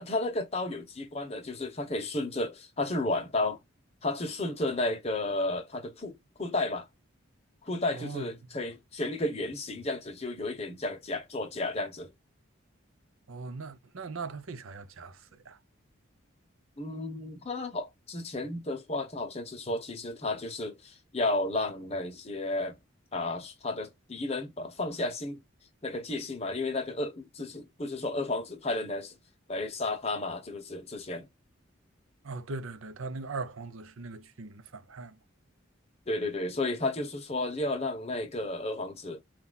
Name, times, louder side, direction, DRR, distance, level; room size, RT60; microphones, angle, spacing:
voice 1, 0.0-3.6 4.0-6.9 7.6-12.1 16.8-22.8 23.1-25.4 25.8-29.1 29.5-31.3 36.1-39.2, left 2 dB, 30° left, 0.8 m, -33 dB
voice 2, 7.9-8.3 8.6-8.7 13.3-15.6 32.2-35.2, right 3 dB, 85° right, 0.7 m, -40 dB
4.2 x 2.4 x 3.9 m
head